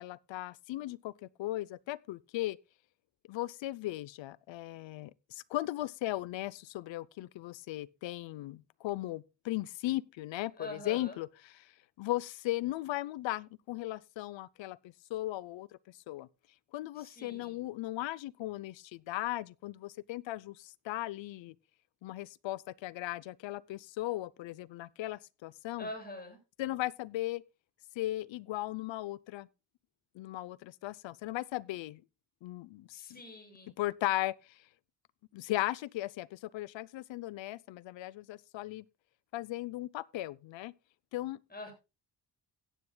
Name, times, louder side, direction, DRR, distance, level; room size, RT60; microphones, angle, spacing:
voice 1, 0.0-2.6 3.3-11.7 12.0-16.3 16.7-21.6 22.0-25.9 26.6-27.4 28.0-29.5 30.1-32.0 32.4-33.2 33.8-34.6 35.3-38.8 39.3-40.7 41.1-41.4, left 16 dB, 90° left, 0.7 m, -37 dB
voice 2, 10.6-11.2 17.0-17.6 25.8-26.4 32.9-33.7 41.5-41.7, left 1 dB, 20° left, 6.8 m, -44 dB
16.5 x 10.0 x 2.3 m
cardioid pair, 90°, 44 cm